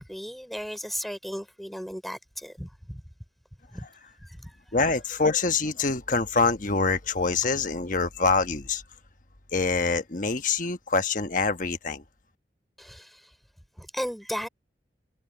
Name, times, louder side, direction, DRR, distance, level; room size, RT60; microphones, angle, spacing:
voice 1, 0.0-3.0 3.7-3.9 4.2-4.8 12.8-13.3 13.8-14.5, equal, ahead, 5.5 m, -36 dB
voice 2, 4.7-8.8 9.5-12.0, left 4 dB, 45° left, 1.3 m, -25 dB
head